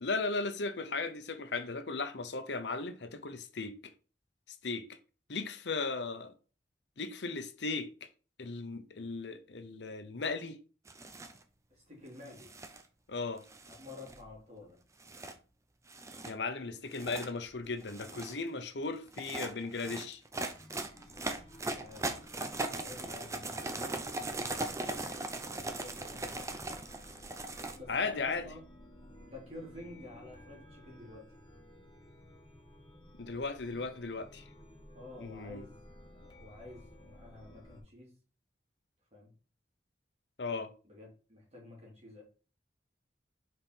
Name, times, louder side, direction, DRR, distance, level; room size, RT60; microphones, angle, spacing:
voice 1, 0.0-3.9 4.6-4.8 5.3-6.3 7.0-8.1 8.4-10.6 13.1-13.4 16.2-20.2 27.9-28.4 33.2-34.4 35.2-35.6 40.4-40.7, left 3 dB, 80° left, 0.8 m, -36 dB
sound 1, 10.9-11.4 12.3-12.8 13.5-14.3 15.0-15.3 15.9-16.3 16.9-17.3 17.8-18.4 19.1-27.8, right 2 dB, 15° right, 0.6 m, -39 dB
voice 2, 11.7-12.5 13.6-14.8 21.6-23.9 24.9-26.4 27.7-28.6 29.2-31.3 34.9-35.9 36.1-38.1 39.1-39.3 40.8-42.2, left 2 dB, 40° right, 3.0 m, -50 dB
Chime, 20.3-37.8, left 1 dB, 30° left, 1.7 m, -55 dB
5.4 x 4.3 x 4.4 m
head